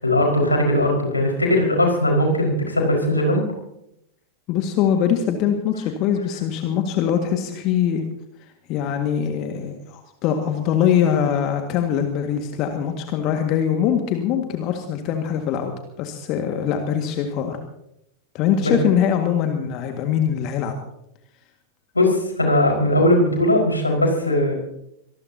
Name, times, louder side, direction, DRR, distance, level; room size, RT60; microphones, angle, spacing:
voice 1, 0.0-3.4 18.6-18.8 21.9-24.5, left 1 dB, 80° left, 0 dB, 4.9 m, -19 dB
voice 2, 4.5-8.0 8.7-17.6 18.3-20.7, left 9 dB, 40° left, 5 dB, 1.9 m, -22 dB
25.5 x 19.5 x 2.8 m, 0.80 s
figure-of-eight pair, 90°, 0 cm